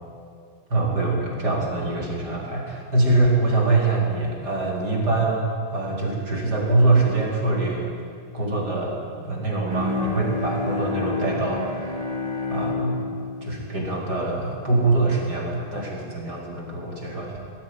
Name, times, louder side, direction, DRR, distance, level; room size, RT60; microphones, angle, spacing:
voice 1, 0.7-7.8 8.3-8.9 9.2-11.8 12.5-13.0 13.4-17.4, right 2 dB, 80° right, -2 dB, 5.0 m, -23 dB
Bowed string instrument, 9.7-15.1, left 3 dB, 20° right, 3.0 m, -30 dB
19.5 x 16.5 x 9.6 m, 2.3 s
omnidirectional pair, 1.8 m